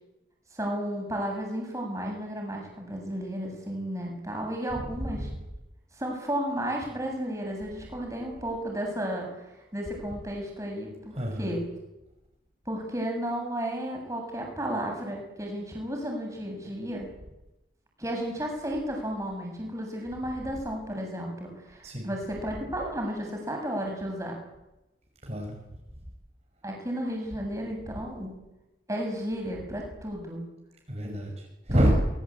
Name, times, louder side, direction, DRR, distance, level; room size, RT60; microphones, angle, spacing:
voice 1, 0.5-5.3 6.0-11.6 12.7-17.1 18.0-24.4 26.6-28.3 28.9-30.4 31.7-31.9, equal, 15° right, 1 dB, 7.7 m, -33 dB
voice 2, 4.7-5.4 11.1-11.6 21.8-22.2 25.2-25.6 30.9-31.9, equal, 35° right, 1 dB, 5.8 m, -28 dB
25.5 x 22.5 x 8.7 m, 0.98 s
head